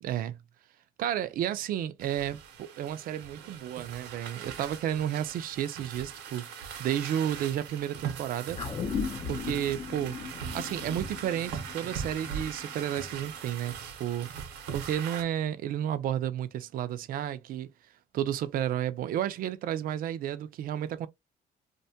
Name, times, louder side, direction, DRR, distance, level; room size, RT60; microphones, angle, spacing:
voice 1, 0.0-0.4 1.0-8.6 9.2-10.1 10.5-14.3 14.7-17.7 18.1-21.1, right 11 dB, 55° right, 0.4 m, -32 dB
sound 1, 2.0-15.2, right 7 dB, 90° right, 0.7 m, -40 dB
sound 2, 8.6-13.2 13.5-13.6, left 6 dB, 30° left, 0.5 m, -37 dB
2.6 x 2.2 x 2.6 m
cardioid pair, 110°, 17 cm